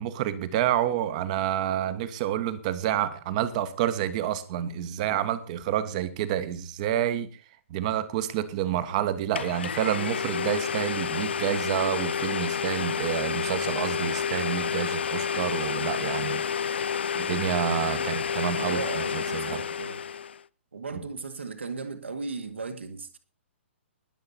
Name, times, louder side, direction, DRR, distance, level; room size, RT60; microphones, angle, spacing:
voice 1, 0.0-7.3 7.7-19.6, right 11 dB, 35° right, 1.3 m, -29 dB
Domestic sounds home sounds, 8.9-9.0 9.3-20.4, left 7 dB, 60° left, 0.5 m, -30 dB
voice 2, 17.9-20.0 20.7-23.2, right 4 dB, 65° right, 2.0 m, -37 dB
20.5 x 7.9 x 4.2 m
figure-of-eight pair, 120°, 7 cm